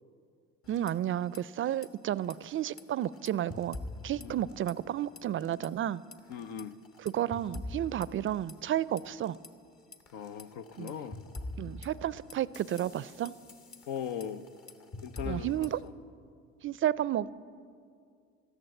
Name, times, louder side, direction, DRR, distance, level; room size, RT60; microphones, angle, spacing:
sound 1, 0.6-1.4 1.7-1.9 2.2-4.9 5.2-5.7 6.1-9.5 9.9-15.9, left 2 dB, 50° left, 1.4 m, -45 dB
voice 1, 0.7-6.0 7.0-9.4 10.8-10.9 11.6-13.3 15.3-15.8 16.6-17.3, right 11 dB, 45° right, 19 dB, 0.4 m, -32 dB
voice 2, 6.3-6.7 10.1-11.2 13.9-14.5 15.0-15.5, left 8 dB, 80° left, 11 dB, 0.7 m, -38 dB
14.0 x 11.0 x 7.7 m, 2.3 s
supercardioid pair, 70°, 30 cm